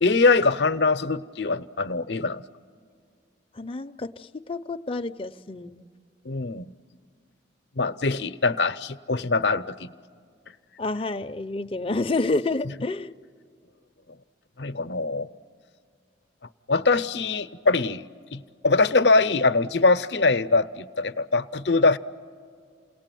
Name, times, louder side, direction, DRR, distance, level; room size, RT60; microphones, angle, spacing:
voice 1, 0.0-2.4 6.3-6.7 7.8-9.9 14.6-15.3 16.7-18.1 18.3-22.0, left 3 dB, 70° left, 12 dB, 0.6 m, -22 dB
voice 2, 3.6-5.9 10.8-13.1, left 2 dB, 30° left, 8 dB, 0.5 m, -29 dB
28.5 x 18.5 x 9.1 m, 2.3 s
head